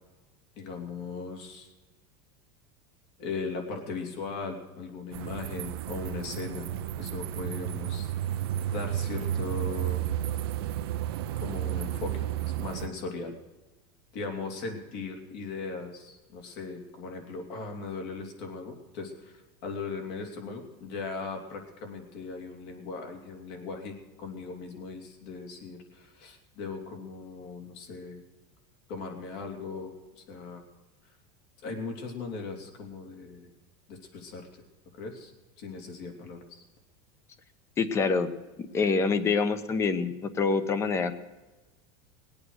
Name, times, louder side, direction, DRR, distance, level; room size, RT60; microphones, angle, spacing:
voice 1, 0.6-1.7 3.2-8.1 8.7-10.0 11.4-12.3 12.6-13.4 14.1-28.2 28.9-30.6 31.6-33.5 33.9-34.6 34.9-35.3 35.6-36.6, left 4 dB, 55° left, 3 dB, 3.2 m, -38 dB
sound 1, 5.1-12.9, right 11 dB, 90° right, 0.6 m, -32 dB
voice 2, 37.8-38.3 38.7-41.2, left 4 dB, 20° left, 12 dB, 1.0 m, -26 dB
20.5 x 8.7 x 6.4 m, 1.2 s
supercardioid pair, 155°, 12 cm